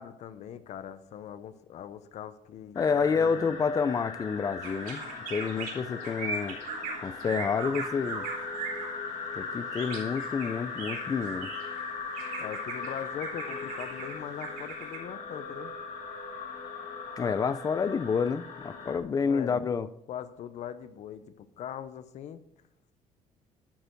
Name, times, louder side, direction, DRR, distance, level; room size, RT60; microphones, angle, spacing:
voice 1, 0.0-3.6 12.4-15.7 19.2-19.7 20.1-22.4, left 9 dB, 55° left, 0.8 m, -41 dB
sound 1, 2.8-19.0, left 4 dB, 75° left, 1.6 m, -39 dB
voice 2, 2.8-5.0 5.3-6.6 7.0-8.3 9.3-11.5 17.2-19.9, left 5 dB, 25° left, 0.5 m, -29 dB
sound 2, 4.6-8.9 9.7-11.8 12.1-15.0, right 5 dB, 90° right, 3.5 m, -39 dB
11.5 x 6.8 x 4.6 m
cardioid pair, 160°, 14 cm